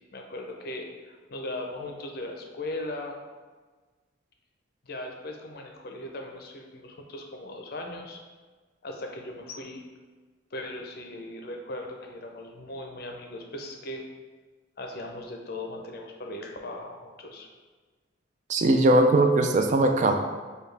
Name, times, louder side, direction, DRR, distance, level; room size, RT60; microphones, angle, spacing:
voice 1, 0.1-3.2 4.8-8.2 8.8-9.8 10.5-14.0 14.8-17.5, left 1 dB, 50° left, 2 dB, 0.5 m, -38 dB
voice 2, 18.5-20.1, right 2 dB, 35° right, 5 dB, 0.3 m, -20 dB
6.8 x 2.3 x 3.3 m, 1.4 s
head